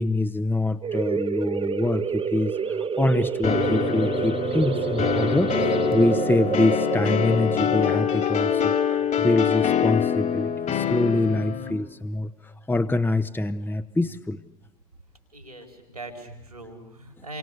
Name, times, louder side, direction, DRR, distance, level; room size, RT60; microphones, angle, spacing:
voice 1, 0.0-2.6 3.0-5.5 5.9-14.4, left 2 dB, 10° left, 10 dB, 1.3 m, -25 dB
sound 1, 0.8-10.1, right 6 dB, 30° right, 1.7 m, -28 dB
sound 2, 3.4-11.7, left 9 dB, 40° left, 3.5 m, -25 dB
voice 2, 15.3-17.4, right 2 dB, 90° right, 5 dB, 4.7 m, -41 dB
29.0 x 25.0 x 8.4 m, 0.90 s
figure-of-eight pair, 55°, 19 cm